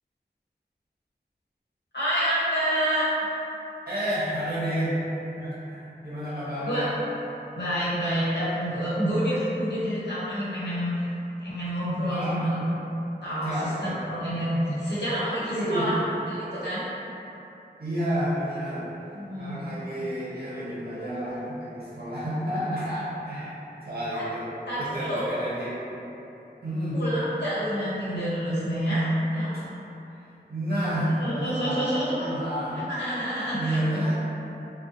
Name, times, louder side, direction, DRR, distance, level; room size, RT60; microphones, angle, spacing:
voice 1, 1.9-3.1 6.7-6.9 7.6-11.1 11.4-12.6 13.2-13.6 13.8-15.9 16.3-16.8 19.1-19.6 24.1-24.2 24.6-25.3 26.9-29.6 31.0-32.3 32.9-33.8, equal, 75° left, -11 dB, 1.0 m, -28 dB
voice 2, 3.9-5.0 5.3-6.9 12.0-12.4 13.4-14.0 15.5-15.9 17.8-18.9 19.4-23.5 23.8-24.5 24.8-25.7 26.6-27.0 29.5-29.6 30.2-32.9 33.5-34.2, equal, 60° right, -11 dB, 0.7 m, -30 dB
2.4 x 2.1 x 2.6 m, 2.9 s
wide cardioid pair, 50°, 18 cm